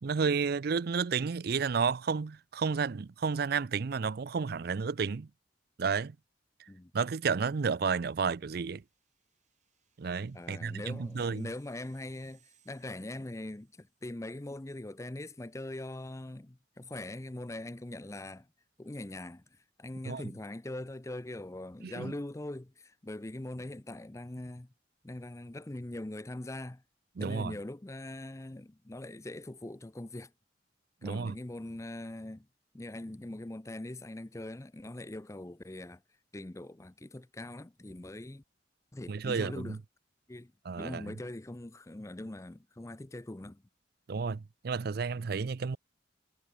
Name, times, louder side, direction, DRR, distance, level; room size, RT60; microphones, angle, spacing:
voice 1, 0.0-5.3 5.8-6.2 6.6-6.7 6.9-8.8 10.0-11.5 20.0-20.2 21.8-22.1 27.2-27.5 31.0-31.4 39.1-39.8 40.6-41.1 44.1-45.8, right 5 dB, 55° right, 0.5 m, -31 dB
sound 1, 8.3-14.2, right 10 dB, 40° right, 3.9 m, -71 dB
voice 2, 10.3-12.4 12.7-18.5 18.8-19.4 19.8-24.7 25.0-26.8 27.2-30.3 31.0-32.5 32.7-36.0 36.3-38.4 38.9-39.8 40.3-43.6, left 1 dB, 15° left, 0.6 m, -42 dB
head